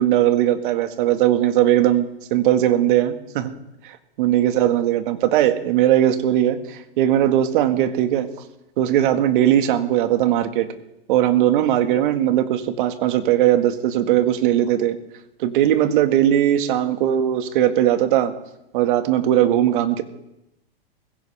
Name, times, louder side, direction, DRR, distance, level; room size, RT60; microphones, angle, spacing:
voice 1, 0.0-3.5 3.8-8.3 8.8-10.7 11.1-15.0 15.4-18.3 18.7-20.0, right 11 dB, 55° right, 9 dB, 1.8 m, -19 dB
21.0 x 16.5 x 3.5 m, 0.89 s
hypercardioid pair, 125°, 30 cm